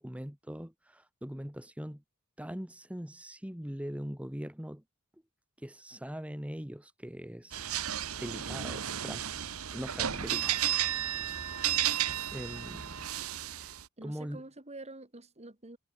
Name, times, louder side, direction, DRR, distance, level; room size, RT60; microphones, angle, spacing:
voice 1, 0.0-2.0 2.4-4.8 5.6-7.6 8.2-9.3 9.7-10.6 12.3-12.9 13.6-14.4, equal, 5° right, 1.4 m, -41 dB
sound 1, 7.5-13.8, right 11 dB, 75° right, 1.3 m, -33 dB
voice 2, 14.0-15.8, right 2 dB, 30° right, 3.3 m, -47 dB
head